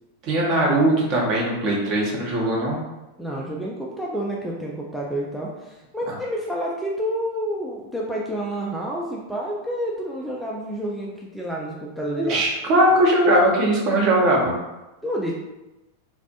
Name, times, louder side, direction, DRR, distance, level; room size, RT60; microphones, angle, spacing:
voice 1, 0.2-2.8 12.2-14.5, right 1 dB, 40° right, -3 dB, 0.7 m, -20 dB
voice 2, 3.2-12.4 15.0-15.3, equal, ahead, -4 dB, 0.3 m, -29 dB
2.4 x 2.0 x 2.7 m, 1.0 s
figure-of-eight pair, 90°, 0 cm